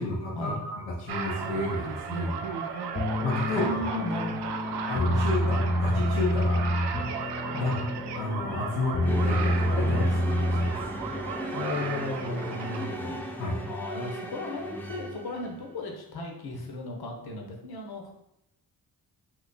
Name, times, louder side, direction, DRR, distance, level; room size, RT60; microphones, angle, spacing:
voice 1, 0.0-2.4 3.2-3.7 4.9-6.7 7.6-7.9 8.2-10.8 13.4-13.6, left 2 dB, 85° left, -4 dB, 0.7 m, -31 dB
sound 1, 1.1-12.9, right 6 dB, 65° right, 0.5 m, -36 dB
sound 2, 2.9-11.0, left 1 dB, 35° left, 1.0 m, -28 dB
voice 2, 3.5-4.4 7.5-7.8 11.5-13.2 13.7-18.1, left 2 dB, 55° left, 1 dB, 0.9 m, -35 dB
sound 3, 9.0-15.6, equal, 5° left, 0.5 m, -37 dB
2.8 x 2.3 x 3.9 m, 0.84 s
hypercardioid pair, 40°, 44 cm